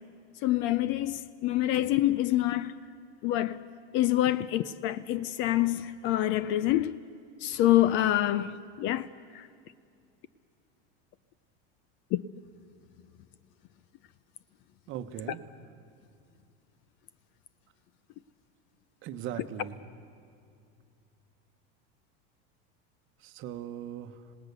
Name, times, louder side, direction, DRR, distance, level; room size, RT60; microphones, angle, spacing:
voice 1, 0.4-2.7 3.2-3.6 3.9-6.9 7.4-9.1 9.3-9.5 12.1-12.2, left 14 dB, 40° left, 0.4 m, -26 dB
voice 2, 14.9-15.4 19.0-19.8 23.2-24.2, right 10 dB, 40° right, 1.0 m, -39 dB
26.5 x 18.5 x 6.8 m
supercardioid pair, 150°, 32 cm